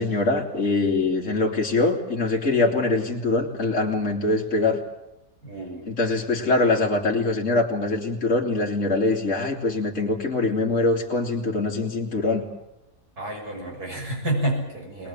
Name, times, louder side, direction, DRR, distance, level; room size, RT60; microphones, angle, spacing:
voice 1, 0.0-4.8 5.9-12.4, left 3 dB, 50° left, -2 dB, 3.0 m, -23 dB
voice 2, 5.4-5.9 13.2-15.1, right 1 dB, 75° right, 0 dB, 7.2 m, -29 dB
22.5 x 21.0 x 8.6 m, 0.89 s
omnidirectional pair, 1.7 m